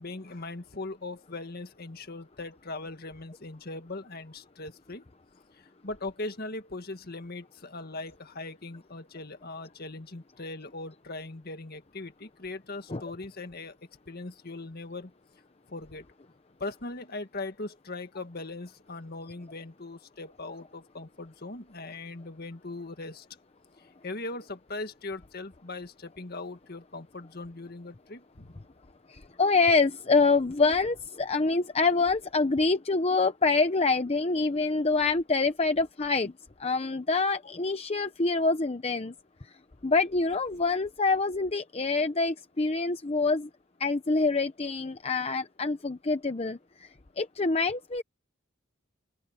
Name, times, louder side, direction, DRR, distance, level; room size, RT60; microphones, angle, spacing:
voice 1, 0.0-5.0 5.5-13.8 14.1-15.1 15.7-16.0 16.6-23.3 23.8-28.6, left 2 dB, 50° left, 1.8 m, -40 dB
voice 2, 29.1-36.3 36.6-39.1 39.8-43.5 43.8-46.6 47.2-48.0, left 3 dB, 30° left, 0.8 m, -26 dB
open air
head